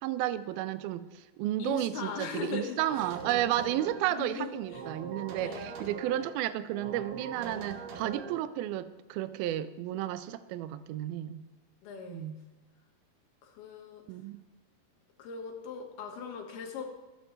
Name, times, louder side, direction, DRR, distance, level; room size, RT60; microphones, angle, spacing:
voice 1, 0.0-11.4 12.1-12.4 14.1-14.4, right 13 dB, 80° right, 13 dB, 2.4 m, -32 dB
voice 2, 1.6-2.8 3.6-3.8 4.1-4.8 5.4-5.7 11.8-12.3 13.4-14.0 15.2-16.8, left 6 dB, 75° left, 3 dB, 3.5 m, -39 dB
sound 1, 2.9-4.1 4.6-6.3 6.7-8.4, right 5 dB, 60° right, 2.6 m, -41 dB
23.0 x 8.1 x 3.3 m, 1.2 s
omnidirectional pair, 4.6 m